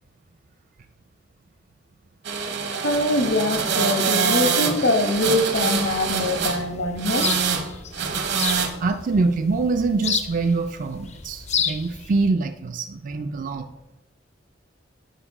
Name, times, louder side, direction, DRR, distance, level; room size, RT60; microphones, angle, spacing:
sound 1, 2.3-6.6 7.0-7.7 7.9-8.7, right 6 dB, 65° right, 1.0 m, -24 dB
voice 1, 2.7-7.3, left 1 dB, 75° left, 6 dB, 1.2 m, -23 dB
sound 2, 5.5-12.3, left 7 dB, 35° left, 0.5 m, -32 dB
voice 2, 8.8-13.7, right 3 dB, 45° right, 7 dB, 0.4 m, -24 dB
9.1 x 4.7 x 4.9 m, 0.98 s
head